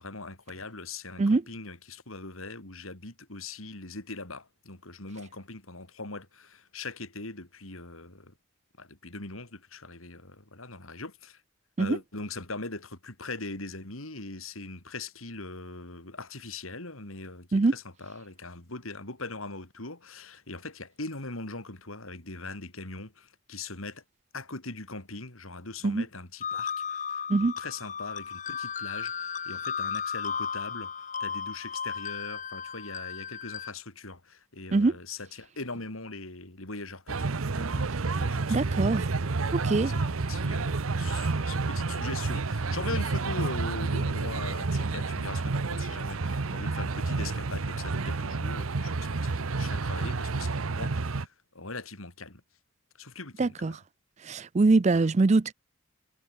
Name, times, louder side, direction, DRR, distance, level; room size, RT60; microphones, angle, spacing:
voice 1, 0.0-8.3 8.8-11.4 11.8-24.0 24.3-38.6 39.4-52.4 53.0-53.8 54.9-55.0, left 3 dB, 85° left, 4.9 m, -41 dB
sound 1, 26.4-33.7, left 7 dB, 35° left, 2.7 m, -35 dB
sound 2, 37.1-51.3, right 3 dB, 85° right, 0.9 m, -30 dB
voice 2, 38.5-39.1 39.5-39.9 53.4-53.8 54.2-55.5, right 3 dB, 35° right, 0.4 m, -23 dB
head